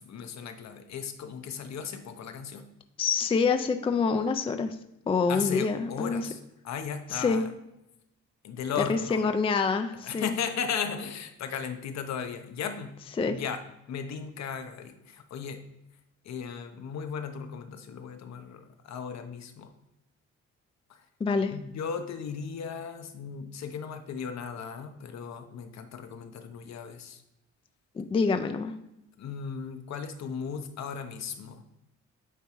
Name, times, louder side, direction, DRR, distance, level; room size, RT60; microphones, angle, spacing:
voice 1, 0.0-2.7 5.3-7.5 8.4-9.2 10.0-13.0 13.3-15.6 16.2-19.7 20.9-21.1 21.5-27.2 29.2-31.6, left 7 dB, 60° left, 7 dB, 0.8 m, -36 dB
voice 2, 3.0-4.8 5.1-6.2 7.1-7.4 8.9-10.3 13.2-13.4 21.2-21.5 28.0-28.7, left 5 dB, 20° left, 8 dB, 0.4 m, -26 dB
9.0 x 3.6 x 3.0 m, 0.87 s
cardioid pair, 90°, 30 cm